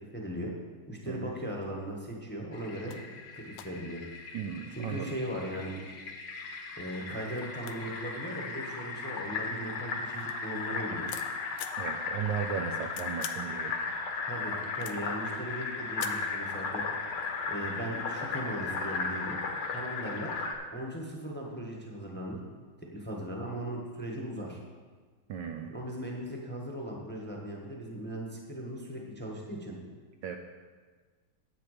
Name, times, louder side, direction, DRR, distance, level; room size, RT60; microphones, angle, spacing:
voice 1, 0.1-0.5 0.9-3.0 3.4-4.0 4.7-5.8 6.8-11.0 14.3-16.8 17.5-19.4 19.7-20.3 20.7-22.4 22.8-24.6 25.7-29.8, equal, 5° left, -1 dB, 1.1 m, -38 dB
Fill (with liquid), 2.5-20.5, left 4 dB, 60° left, 1.7 m, -36 dB
sound 1, 2.6-2.7 2.9-3.0 3.6-4.5 5.2-5.8 6.5-6.6 6.9-7.0 7.3-9.3 9.8-11.8 12.5-13.5 13.9-15.2 16.0-16.4, left 10 dB, 80° left, 1.4 m, -45 dB
voice 2, 4.3-5.2 11.8-14.0 25.3-25.7 30.2-30.4, right 7 dB, 70° right, 4 dB, 1.1 m, -36 dB
10.5 x 8.5 x 5.0 m, 1.5 s
omnidirectional pair, 2.3 m